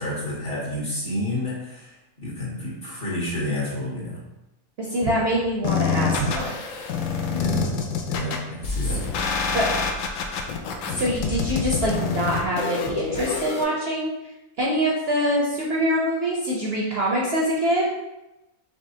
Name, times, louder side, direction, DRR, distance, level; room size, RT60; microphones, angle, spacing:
voice 1, 0.0-4.2 7.3-9.0, left 1 dB, 40° left, -6 dB, 1.4 m, -30 dB
voice 2, 4.8-6.5 8.9-9.0 9.5-9.7 10.9-14.1 14.6-17.8, equal, 55° right, -3 dB, 0.7 m, -24 dB
sound 1, 5.6-13.6, left 5 dB, 70° left, 0.9 m, -26 dB
5.3 x 3.0 x 2.7 m, 0.97 s
omnidirectional pair, 1.5 m